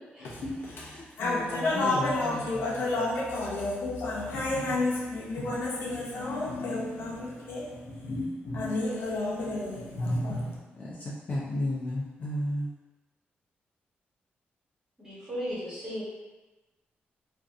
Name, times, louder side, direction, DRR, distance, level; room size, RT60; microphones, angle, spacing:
voice 1, 0.2-0.9 1.2-10.6, left 2 dB, 90° left, 0.6 m, -31 dB
voice 2, 0.8-2.6 10.8-10.9 11.3-12.7, left 1 dB, 40° left, 0.4 m, -33 dB
voice 3, 15.0-16.0, equal, 15° right, 1.2 m, -36 dB
2.6 x 2.4 x 2.4 m
wide cardioid pair, 150°, 4 cm